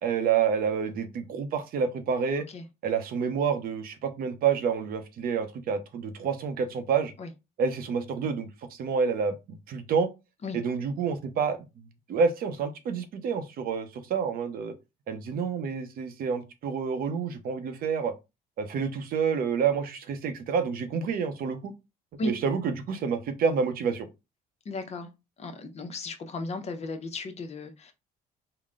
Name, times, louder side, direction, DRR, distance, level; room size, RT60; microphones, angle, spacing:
voice 1, 0.0-2.5 2.8-7.1 7.6-10.1 10.5-14.7 15.1-18.1 18.6-21.7 22.2-24.1, right 6 dB, 60° right, 0.7 m, -28 dB
voice 2, 24.6-25.1 25.4-27.9, left 2 dB, 40° left, 0.8 m, -35 dB
3.9 x 2.1 x 3.6 m
cardioid pair, 110°, 17 cm